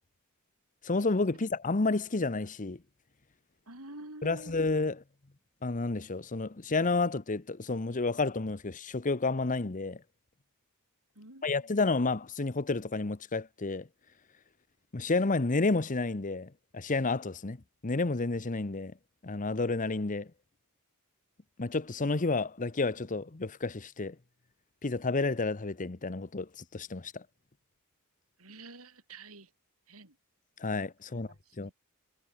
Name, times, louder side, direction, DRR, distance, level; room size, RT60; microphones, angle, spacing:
voice 1, 0.8-2.8 4.2-5.0 5.6-10.0 11.4-13.9 14.9-17.6 17.8-18.9 19.2-20.3 21.6-24.1 24.8-27.2 30.6-31.3 31.6-31.7, left 3 dB, 35° left, 0.9 m, -30 dB
voice 2, 3.7-4.5 11.1-11.7 28.4-29.5 29.9-30.2 31.1-31.7, right 2 dB, 75° right, 6.8 m, -49 dB
head